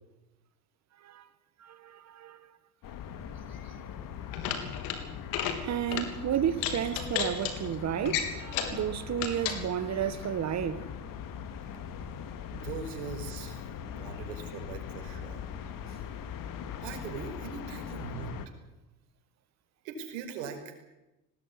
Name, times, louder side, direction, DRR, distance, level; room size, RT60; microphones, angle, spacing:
voice 1, 1.6-2.5 5.6-10.9, right 10 dB, 45° right, 1.7 m, -32 dB
sound 1, 2.8-18.5, left 8 dB, 60° left, 2.5 m, -41 dB
sound 2, 4.3-5.0 5.3-5.6 5.9-6.1 6.6-7.5 8.1-8.8 9.2-9.6, left 9 dB, 80° left, 3.6 m, -32 dB
voice 2, 12.5-13.6 14.0-15.4 16.8-18.4 19.8-20.7, right 6 dB, 80° right, 5.2 m, -40 dB
19.5 x 18.5 x 9.9 m
supercardioid pair, 80°, 38 cm